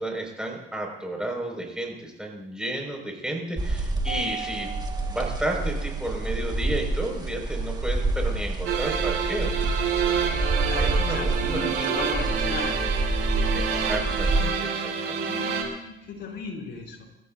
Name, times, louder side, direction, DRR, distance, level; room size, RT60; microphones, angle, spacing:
voice 1, 0.0-4.7 5.1-9.5 10.7-11.8 13.5-15.3, right 1 dB, 5° right, 0 dB, 5.4 m, -32 dB
sound 1, 3.6-14.4, right 2 dB, 20° right, 1.7 m, -28 dB
Keyboard (musical), 4.1-6.3, right 6 dB, 40° right, 3.9 m, -39 dB
sound 2, 8.6-15.6, right 6 dB, 85° right, 3.4 m, -28 dB
voice 2, 10.6-12.8 15.2-17.0, left 2 dB, 65° left, 1 dB, 4.2 m, -35 dB
27.0 x 15.0 x 2.7 m, 0.86 s
cardioid pair, 90°, 20 cm